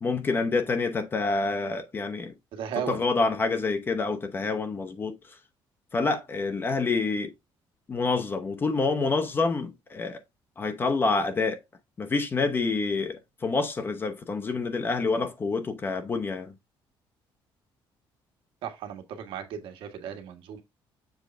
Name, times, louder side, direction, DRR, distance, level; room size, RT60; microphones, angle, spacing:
voice 1, 0.0-2.3 2.9-5.2 5.9-7.3 7.9-10.2 10.6-11.6 12.0-16.5, left 3 dB, 25° left, 0.8 m, -27 dB
voice 2, 2.5-3.0 18.6-20.6, right 8 dB, 75° right, 1.6 m, -35 dB
7.2 x 3.7 x 4.3 m
cardioid pair, 160°, 9 cm